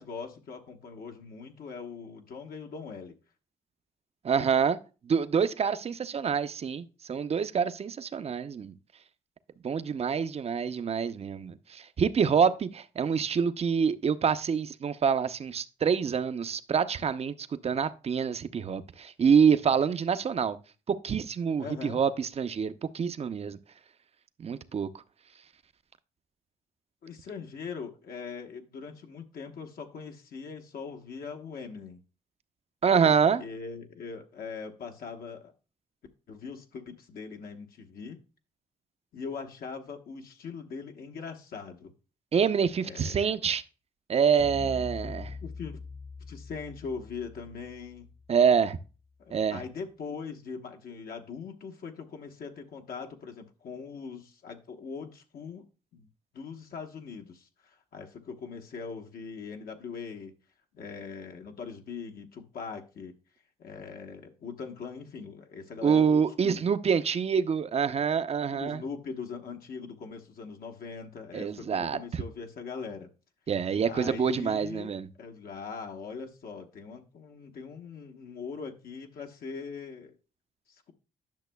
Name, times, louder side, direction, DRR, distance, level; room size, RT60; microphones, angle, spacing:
voice 1, 0.0-3.1 21.6-22.0 27.0-32.0 33.0-35.5 36.3-38.2 39.1-41.9 42.8-43.4 45.4-45.8 46.3-48.1 49.2-55.6 55.9-56.1 56.3-60.3 60.7-63.1 63.6-66.6 68.5-73.1 73.8-80.1 80.7-80.9, left 5 dB, 65° left, 1.0 m, -41 dB
voice 2, 4.2-4.8 5.0-8.7 9.6-20.6 20.9-23.6 24.4-24.9 32.8-33.4 42.3-43.6 44.1-45.3 48.3-48.8 49.3-49.6 65.8-68.8 71.3-72.2 73.5-75.1, right 6 dB, 40° right, 0.6 m, -26 dB
sound 1, 44.4-48.7, left 4 dB, 30° left, 0.4 m, -43 dB
10.5 x 6.0 x 2.2 m
cardioid pair, 70°, 16 cm